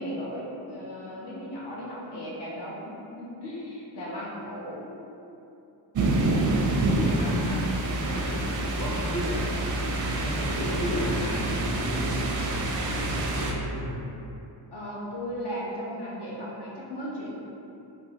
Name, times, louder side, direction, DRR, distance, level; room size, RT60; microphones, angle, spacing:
voice 1, 0.0-5.0 8.1-8.5 14.7-17.3, equal, 60° left, -6 dB, 0.9 m, -36 dB
sound 1, 5.9-13.5, right 2 dB, 45° right, 0.4 m, -27 dB
voice 2, 6.1-7.6 8.0-9.5 9.8-13.9, equal, 40° left, -6 dB, 0.5 m, -34 dB
3.5 x 2.4 x 2.8 m, 2.8 s
wide cardioid pair, 90°, 46 cm